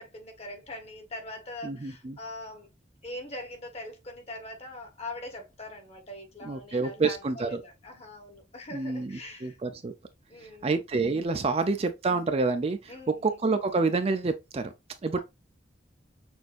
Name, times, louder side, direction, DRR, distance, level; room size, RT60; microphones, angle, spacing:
voice 1, 0.0-2.7 3.0-9.6 10.3-10.8 11.5-11.8 12.9-13.4, left 1 dB, 35° left, 1.3 m, -42 dB
voice 2, 1.6-2.2 6.4-7.6 8.7-9.9 10.6-14.7 15.0-15.2, right 3 dB, 35° right, 0.4 m, -28 dB
6.2 x 2.6 x 2.5 m
head